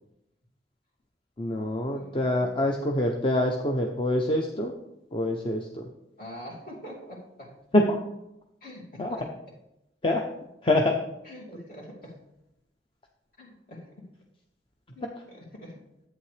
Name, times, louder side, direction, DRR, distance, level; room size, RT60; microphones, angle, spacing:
voice 1, 1.4-4.7 5.1-5.9 7.7-8.0 9.0-9.2 10.0-10.3 10.6-11.0, left 1 dB, 30° left, 2 dB, 0.6 m, -25 dB
voice 2, 1.9-2.7 6.2-7.6 8.6-9.3 11.2-12.2 13.4-14.0 14.9-15.8, equal, 55° left, -4 dB, 2.7 m, -44 dB
11.5 x 8.5 x 3.3 m, 0.89 s
head